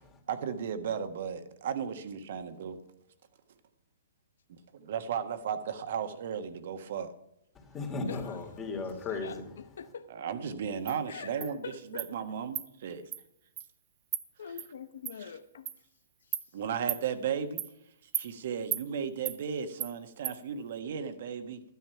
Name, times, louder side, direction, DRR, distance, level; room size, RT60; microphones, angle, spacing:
voice 1, 0.3-2.8 4.5-7.1 10.1-11.6 11.9-13.1 16.5-17.6 18.1-21.6, right 7 dB, 60° right, 1.4 m, -35 dB
voice 2, 7.5-9.4, left 3 dB, 20° left, 2.6 m, -36 dB
voice 3, 9.1-10.1 11.1-12.1 14.4-15.7 16.2-16.4, left 6 dB, 70° left, 0.8 m, -44 dB
Insect, 10.9-11.0 11.4-11.5 12.0-12.1 12.5-12.7 13.1-13.2 13.6-13.7 14.1-14.2 14.6-14.7 15.0-15.1 15.6-15.8 16.3-16.4 16.9-17.0 17.6-17.7 18.1-18.3 18.7-18.8 19.2-19.4 19.8-19.9 20.2-20.4, right 12 dB, 30° right, 0.9 m, -34 dB
12.0 x 9.4 x 5.8 m
hypercardioid pair, 130°, 0 cm